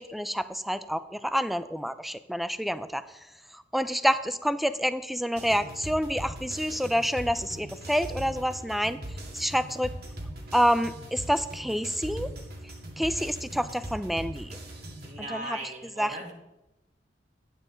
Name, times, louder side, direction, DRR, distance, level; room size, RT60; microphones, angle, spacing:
voice 1, 0.0-3.1 3.5-9.0 9.3-9.9 10.5-12.3 13.0-14.6 15.3-15.6 16.0-16.2, equal, ahead, 12 dB, 0.4 m, -28 dB
sound 1, 5.3-15.1, right 1 dB, 60° right, 2.1 m, -40 dB
voice 2, 15.0-16.3, right 2 dB, 40° right, 0 dB, 1.9 m, -38 dB
11.5 x 9.2 x 3.9 m, 0.93 s
head